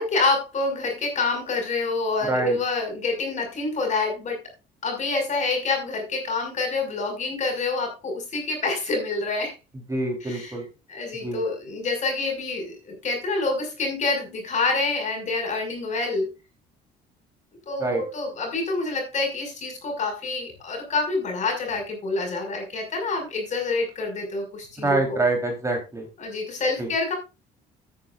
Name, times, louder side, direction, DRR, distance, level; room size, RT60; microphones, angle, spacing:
voice 1, 0.0-4.4 4.8-9.5 10.2-10.6 10.9-16.3 17.7-25.2 26.2-27.1, left 3 dB, 45° left, 3 dB, 5.9 m, -27 dB
voice 2, 9.9-10.6 11.2-11.4 17.8-18.0 24.8-26.0 26.8-26.9, right 2 dB, 20° right, 2 dB, 3.9 m, -25 dB
14.0 x 9.3 x 2.6 m, 0.28 s
cardioid pair, 110°, 17 cm